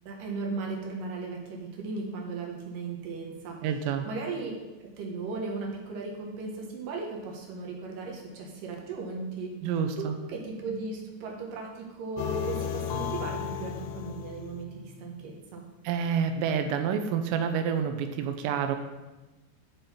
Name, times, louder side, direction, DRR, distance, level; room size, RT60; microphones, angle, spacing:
voice 1, 0.0-3.6 4.1-4.5 4.8-9.5 10.0-15.6, right 4 dB, 65° right, 0 dB, 2.3 m, -36 dB
voice 2, 3.6-4.1 9.6-10.1 15.8-18.8, right 7 dB, 85° right, 7 dB, 2.8 m, -28 dB
sound 1, 12.2-15.3, left 8 dB, 85° left, 2.5 m, -34 dB
10.5 x 5.4 x 4.3 m, 1.1 s
omnidirectional pair, 5.0 m